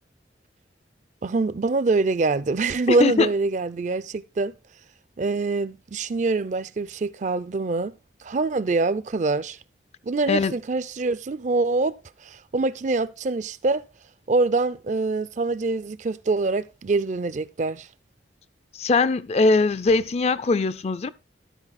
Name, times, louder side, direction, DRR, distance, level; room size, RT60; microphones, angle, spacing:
voice 1, 1.2-4.5 5.2-7.9 8.2-9.6 10.0-12.0 12.2-13.8 14.3-17.9, right 3 dB, 40° right, 0.4 m, -24 dB
voice 2, 2.9-3.3 10.3-10.5 18.7-21.1, left 3 dB, 35° left, 0.4 m, -21 dB
12.0 x 4.8 x 4.1 m
head